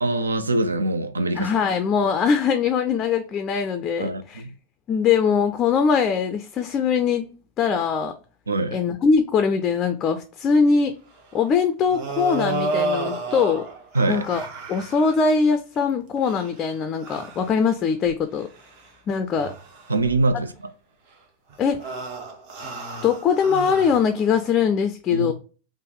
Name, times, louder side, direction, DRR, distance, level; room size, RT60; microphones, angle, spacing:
voice 1, 0.0-1.5 2.0-2.1 4.0-4.5 8.5-8.8 13.9-14.3 19.9-20.7 25.1-25.3, right 2 dB, 75° right, 0.4 m, -24 dB
voice 2, 1.3-4.4 4.9-7.3 7.6-8.1 8.7-11.0 11.3-13.7 14.1-18.5 19.1-19.5 21.6-21.9 23.0-25.3, left 6 dB, 30° left, 0.3 m, -22 dB
sound 1, 11.9-15.1 16.2-16.6 17.0-17.5 18.1-18.2 18.6-18.8 19.3-20.3 21.5-24.5, right 3 dB, 45° right, 0.7 m, -31 dB
3.4 x 2.0 x 3.7 m
figure-of-eight pair, 90°, 0 cm